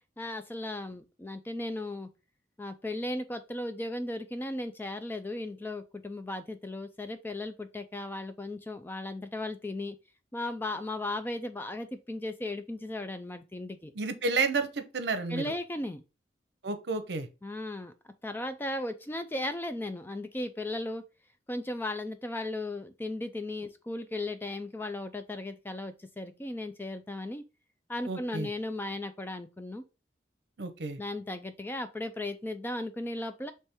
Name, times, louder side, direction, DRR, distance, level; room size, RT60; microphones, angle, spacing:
voice 1, 0.2-2.1 2.6-10.0 10.3-13.9 15.3-16.0 17.4-21.0 21.5-27.4 27.9-29.8 31.0-33.5, left 1 dB, 10° left, 0.3 m, -36 dB
voice 2, 14.0-15.5 16.6-17.3 28.1-28.5 30.6-31.0, right 3 dB, 75° right, 0.7 m, -31 dB
3.4 x 3.2 x 4.3 m
head